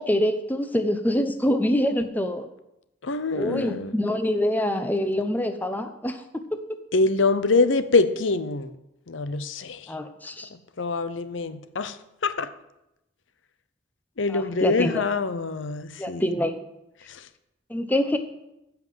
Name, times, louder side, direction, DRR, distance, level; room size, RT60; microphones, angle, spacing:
voice 1, 0.0-2.5 3.3-6.6 9.9-10.5 14.3-15.0 16.0-16.5 17.7-18.2, left 1 dB, 10° left, 7 dB, 0.8 m, -25 dB
voice 2, 3.0-3.9 6.9-8.8 9.1-9.9 10.5-12.0 12.2-12.5 14.2-16.2 17.1-17.3, left 3 dB, 75° left, 12 dB, 0.8 m, -25 dB
14.5 x 5.8 x 7.6 m, 0.89 s
head